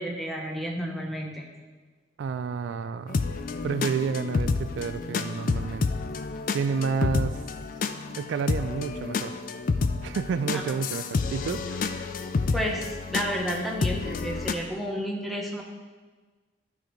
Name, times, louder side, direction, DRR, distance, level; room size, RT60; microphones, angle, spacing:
voice 1, 0.0-1.5 12.5-15.6, equal, ahead, -1 dB, 0.8 m, -31 dB
voice 2, 2.2-3.2 3.6-5.9 6.5-7.3 8.2-9.3 10.0-12.1, right 5 dB, 85° right, 12 dB, 0.3 m, -30 dB
sound 1, 3.1-14.5, left 4 dB, 45° left, 0.4 m, -29 dB
12.0 x 5.1 x 3.1 m, 1.4 s
head